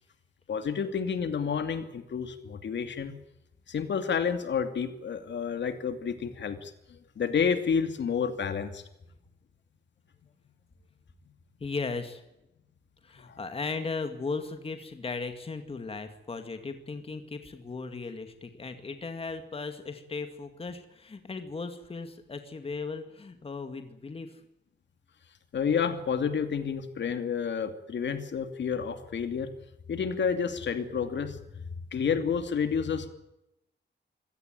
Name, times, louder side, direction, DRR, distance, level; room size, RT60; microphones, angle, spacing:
voice 1, 0.5-3.1 3.7-8.8 25.5-29.5 29.9-31.4 31.9-33.1, left 6 dB, 75° left, 8 dB, 2.6 m, -30 dB
voice 2, 11.6-12.2 13.0-24.4, left 4 dB, 30° left, 7 dB, 2.2 m, -37 dB
26.5 x 17.0 x 9.2 m, 0.90 s
wide cardioid pair, 180°, 19 cm